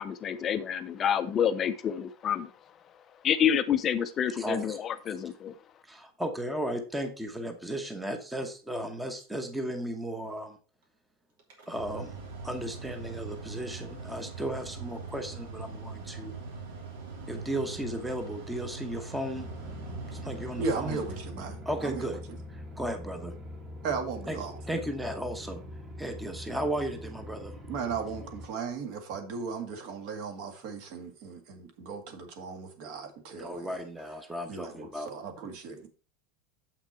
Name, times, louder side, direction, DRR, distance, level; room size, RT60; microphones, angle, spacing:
voice 1, 0.0-2.5 3.2-5.5, left 9 dB, 25° left, 0.5 m, -28 dB
voice 2, 4.3-4.8 5.8-10.6 11.7-12.1 12.4-16.3 17.3-19.5 20.1-21.0 21.6-22.2 22.5-23.3 24.3-24.4 24.7-25.6 26.0-27.5 33.4-35.1, right 1 dB, 5° right, 0.9 m, -35 dB
Mechanical fan, 11.4-21.9, right 4 dB, 80° right, 3.1 m, -42 dB
sound 1, 19.3-28.5, left 1 dB, 25° right, 1.4 m, -43 dB
voice 3, 20.6-22.1 23.8-24.6 27.7-33.7 34.5-35.9, right 5 dB, 55° right, 1.8 m, -36 dB
7.4 x 5.9 x 4.3 m
supercardioid pair, 155°, 0 cm